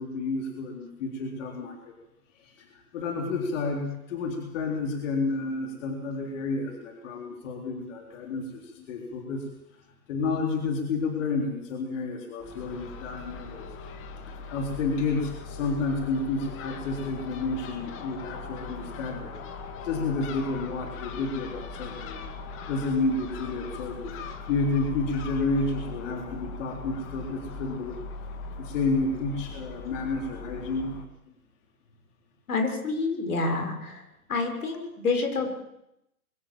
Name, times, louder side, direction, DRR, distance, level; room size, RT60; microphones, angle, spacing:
voice 1, 0.0-1.9 2.3-9.5 10.1-13.7 14.2-19.4 19.8-22.2 22.7-24.2 24.5-28.0 28.4-31.0, left 3 dB, 55° left, 1 dB, 4.1 m, -30 dB
Crow / Gull seagull, 12.4-31.0, left 3 dB, 30° left, 2.4 m, -40 dB
voice 2, 32.5-34.0 34.3-35.5, left 3 dB, 85° left, 5 dB, 6.1 m, -28 dB
23.5 x 15.0 x 7.7 m, 0.83 s
hypercardioid pair, 130°, 44 cm